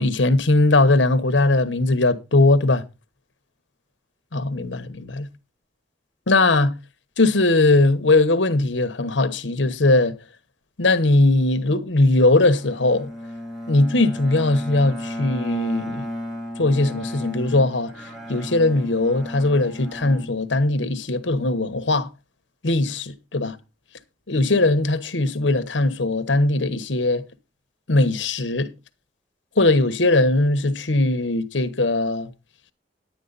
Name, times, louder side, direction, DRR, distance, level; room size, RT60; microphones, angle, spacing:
voice 1, 0.0-2.8 4.3-5.3 6.3-6.7 7.2-10.1 10.8-13.1 13.7-16.1 16.6-17.9 18.3-22.1 22.6-23.6 24.3-27.2 27.9-28.7 29.6-32.3, left 2 dB, 75° left, 1.1 m, -19 dB
Bowed string instrument, 12.6-21.0, equal, ahead, 1.8 m, -34 dB
10.5 x 9.3 x 4.0 m
head